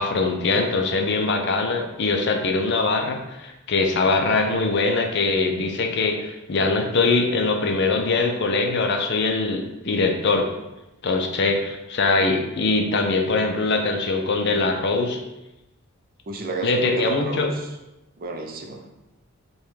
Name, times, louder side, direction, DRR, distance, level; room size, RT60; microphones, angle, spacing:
voice 1, 0.0-10.5 11.0-15.2 16.6-17.5, left 3 dB, 50° left, 4 dB, 0.5 m, -22 dB
voice 2, 16.3-17.7 18.2-18.9, right 3 dB, 40° right, 3 dB, 0.5 m, -31 dB
5.3 x 2.3 x 3.2 m, 0.96 s
head